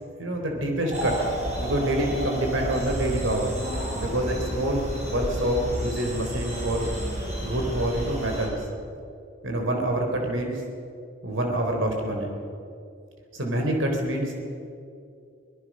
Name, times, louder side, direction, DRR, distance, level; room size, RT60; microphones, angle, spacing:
voice 1, 0.2-1.3 1.6-3.5 3.9-6.9 7.4-8.6 9.4-10.6 11.2-12.4 13.3-14.3, right 1 dB, 75° right, 2 dB, 3.7 m, -26 dB
sound 1, 0.9-8.5, equal, 35° right, 5.3 m, -31 dB
24.0 x 19.5 x 6.2 m, 2.4 s
head